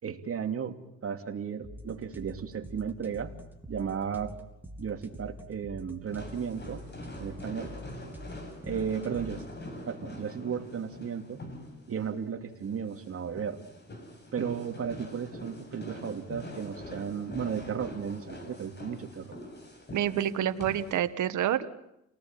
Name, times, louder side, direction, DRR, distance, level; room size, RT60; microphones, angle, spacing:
voice 1, 0.0-0.8 1.0-3.3 3.7-4.3 4.8-6.8 7.2-7.7 8.6-9.4 9.9-11.4 11.9-13.6 14.3-19.4, right 7 dB, 50° right, 5 dB, 2.9 m, -34 dB
sound 1, 1.6-9.6, equal, 5° right, 4.0 m, -46 dB
sound 2, 6.1-21.0, left 1 dB, 35° left, 7.6 m, -44 dB
voice 2, 19.9-21.7, right 10 dB, 75° right, 11 dB, 1.6 m, -28 dB
29.5 x 19.0 x 9.1 m, 0.86 s
cardioid pair, 90°, 30 cm